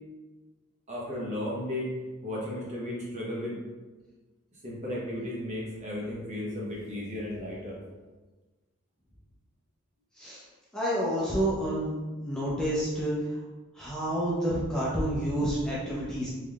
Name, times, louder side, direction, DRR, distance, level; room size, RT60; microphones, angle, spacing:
voice 1, 0.9-1.9 2.2-3.6 4.6-7.8, left 1 dB, 30° right, -5 dB, 0.9 m, -34 dB
voice 2, 10.7-11.9 12.2-13.1 13.8-16.3, right 1 dB, 5° left, -9 dB, 0.6 m, -29 dB
3.5 x 3.1 x 2.3 m, 1.2 s
head